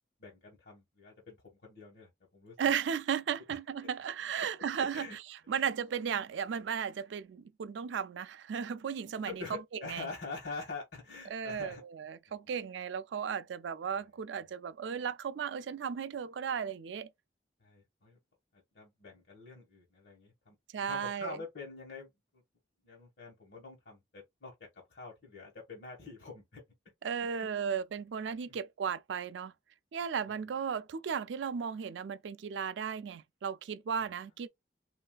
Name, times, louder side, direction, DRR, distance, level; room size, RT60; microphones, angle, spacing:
voice 1, 0.2-1.4 1.6-2.7 4.3-4.5 4.8-5.2 5.5-5.7 9.2-11.8 17.6-18.2 18.5-22.4 22.8-24.5 24.9-26.6 27.2-27.8 28.5-28.6 30.3-30.4, left 3 dB, 70° left, 1.2 m, -46 dB
voice 2, 2.6-5.2 5.5-10.1 11.3-17.1 20.7-21.4 27.0-29.5 29.9-34.5, right 7 dB, 80° right, 0.4 m, -35 dB
3.2 x 2.6 x 2.2 m
head